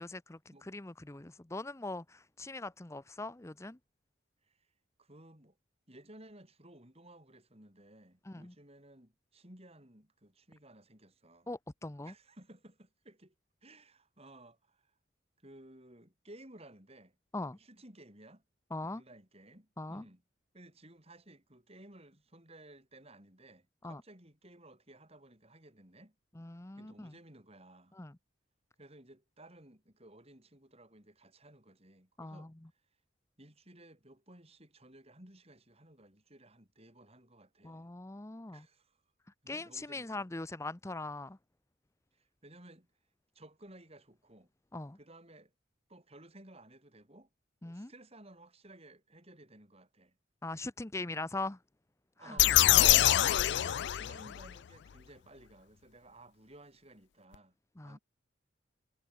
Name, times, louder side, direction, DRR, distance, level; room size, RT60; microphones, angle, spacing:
voice 1, 0.0-3.8 8.2-8.5 11.5-12.1 17.3-17.6 18.7-19.0 19.8-20.0 23.8-24.0 26.4-27.1 27.9-28.1 32.2-32.5 37.6-38.6 39.5-41.4 44.7-45.0 47.6-47.9 50.4-51.6 52.2-52.4 57.8-58.0, left 2 dB, 15° left, 0.6 m, -41 dB
voice 2, 5.0-5.6 5.9-11.5 12.0-13.3 13.6-14.9 15.4-17.2 17.5-18.4 18.9-20.2 20.5-26.2 26.8-27.9 28.8-32.5 33.4-37.9 38.5-39.0 39.4-40.3 42.1-42.9 43.3-44.5 44.9-45.5 45.9-47.3 47.6-50.2 52.2-57.6 57.8-58.0, right 1 dB, 30° right, 7.5 m, -56 dB
sound 1, 52.4-54.5, left 14 dB, 60° left, 0.3 m, -24 dB
head